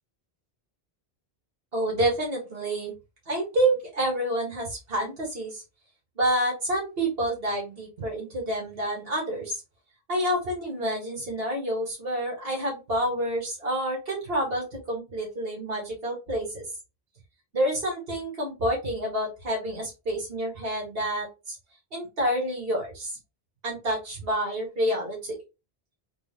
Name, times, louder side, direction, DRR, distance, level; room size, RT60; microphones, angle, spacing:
voice 1, 1.7-2.9 3.3-5.6 6.2-9.6 10.1-16.6 17.5-21.6 21.9-23.2 23.6-25.4, right 1 dB, 65° right, -2 dB, 2.2 m, -28 dB
3.9 x 3.5 x 3.4 m, 0.28 s
omnidirectional pair, 1.0 m